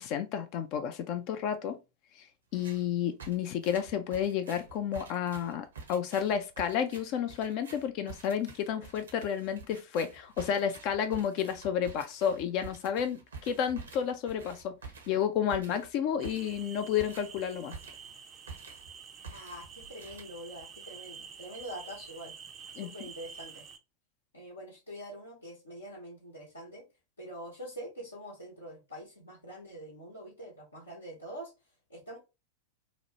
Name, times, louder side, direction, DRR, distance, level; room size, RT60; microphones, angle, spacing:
voice 1, 0.0-1.8 2.5-14.8 15.1-17.7 22.8-22.9, left 8 dB, 45° left, 0.3 m, -31 dB
sound 1, 2.5-2.9 3.2-18.2 18.5-18.9 19.2-20.6, right 5 dB, 70° right, 0.7 m, -48 dB
sound 2, 16.2-23.8, right 6 dB, 30° right, 0.4 m, -49 dB
voice 2, 19.3-22.3 22.7-23.6 24.3-26.8 27.2-31.5 31.9-32.2, equal, 75° left, 0.9 m, -45 dB
2.9 x 2.1 x 2.8 m
figure-of-eight pair, 90°, 0 cm